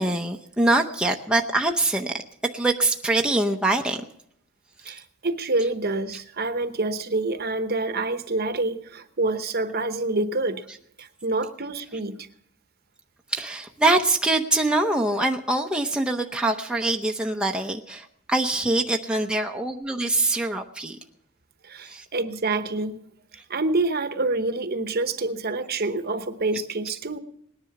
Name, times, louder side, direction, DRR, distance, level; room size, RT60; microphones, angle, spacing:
voice 1, 0.0-2.2 2.5-4.0 13.3-21.0 21.9-22.1 23.3-23.4, right 2 dB, 5° right, 2 dB, 0.7 m, -24 dB
voice 2, 4.9-10.6 11.0-12.2 21.7-23.0 23.5-27.2, right 2 dB, 45° right, 10 dB, 1.0 m, -27 dB
19.0 x 10.5 x 5.9 m, 0.70 s
head